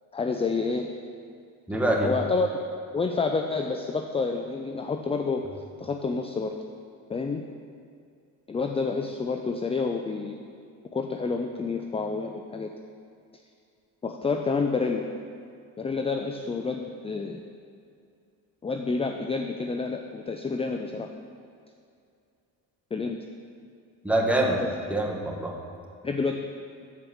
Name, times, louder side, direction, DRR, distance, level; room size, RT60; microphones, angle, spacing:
voice 1, 0.1-0.9 1.7-2.5 2.9-5.4 5.8-6.5 7.1-7.4 8.5-10.4 10.9-12.7 14.0-15.1 15.8-17.4 18.6-21.1 22.9-23.2 24.6-24.8 26.0-26.4, left 4 dB, 15° left, 5 dB, 0.3 m, -29 dB
voice 2, 1.7-2.1 24.0-24.6 24.9-25.5, right 1 dB, 5° right, -2 dB, 1.4 m, -24 dB
7.6 x 4.6 x 6.3 m, 2.4 s
supercardioid pair, 60°, 47 cm